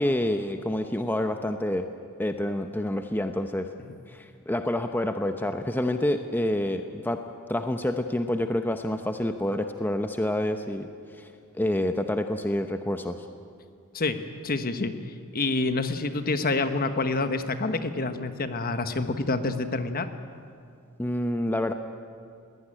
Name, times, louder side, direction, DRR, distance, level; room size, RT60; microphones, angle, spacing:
voice 1, 0.0-1.9 2.2-3.7 4.1-7.2 7.5-13.3 21.0-21.7, left 1 dB, 10° left, 6 dB, 0.7 m, -28 dB
voice 2, 14.4-14.9 15.3-20.1, left 3 dB, 45° left, 9 dB, 1.2 m, -27 dB
20.5 x 18.0 x 10.0 m, 2.3 s
head